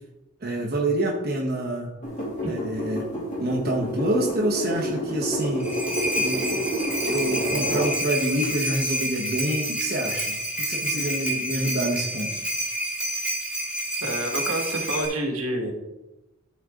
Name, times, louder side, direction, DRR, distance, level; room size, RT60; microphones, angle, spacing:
voice 1, 0.4-1.9 2.5-3.1 3.4-5.8 6.2-6.7 7.0-12.3, right 1 dB, 45° right, -2 dB, 1.1 m, -27 dB
sound 1, 2.0-8.0 8.4-8.5, equal, 35° left, 2.9 m, -29 dB
sound 2, 5.4-15.1, right 1 dB, 5° right, 2.1 m, -29 dB
voice 2, 14.0-15.7, right 1 dB, 80° right, 1 dB, 1.7 m, -28 dB
12.5 x 4.5 x 3.7 m, 1.0 s
head